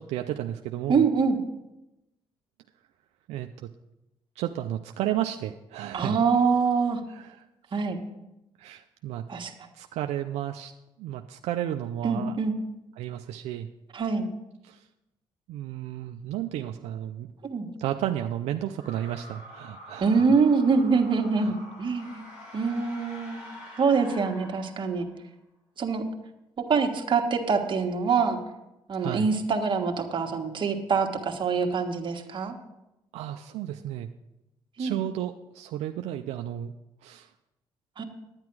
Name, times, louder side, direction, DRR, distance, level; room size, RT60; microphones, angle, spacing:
voice 1, 0.0-1.0 3.3-3.7 4.4-6.2 7.1-7.5 8.6-9.3 9.7-10.7 11.0-12.3 13.0-13.7 14.6-14.9 15.5-17.3 17.8-20.2 21.4-21.5 29.0-29.3 33.1-34.1 34.8-36.8 37.0-37.3, right 12 dB, 85° right, 6 dB, 0.4 m, -33 dB
voice 2, 0.9-1.4 5.9-7.0 7.7-8.0 9.3-9.5 12.0-12.6 13.9-14.3 17.4-17.7 20.0-22.2 22.5-23.4 23.8-25.1 25.8-26.0 26.6-28.4 28.9-32.5 34.8-35.0 38.0-38.1, right 5 dB, 50° right, 3 dB, 1.4 m, -25 dB
sound 1, 18.7-25.2, left 1 dB, 80° left, 3.4 m, -46 dB
10.5 x 9.7 x 4.7 m, 0.94 s
supercardioid pair, 75°, 11 cm